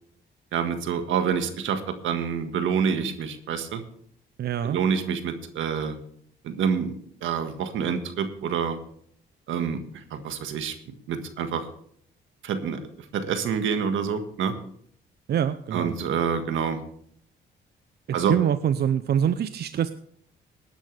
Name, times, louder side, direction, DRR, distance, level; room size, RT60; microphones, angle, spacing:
voice 1, 0.5-3.8 4.6-6.0 6.4-8.8 9.5-9.8 10.1-10.7 11.1-11.7 12.4-12.8 13.1-14.5 15.7-16.8 18.1-18.3, right 7 dB, 80° right, 8 dB, 1.6 m, -27 dB
voice 2, 4.4-4.8 15.3-15.9 18.1-19.9, right 9 dB, 55° right, 12 dB, 0.6 m, -25 dB
19.0 x 10.0 x 3.4 m, 0.64 s
cardioid pair, 90°, 20 cm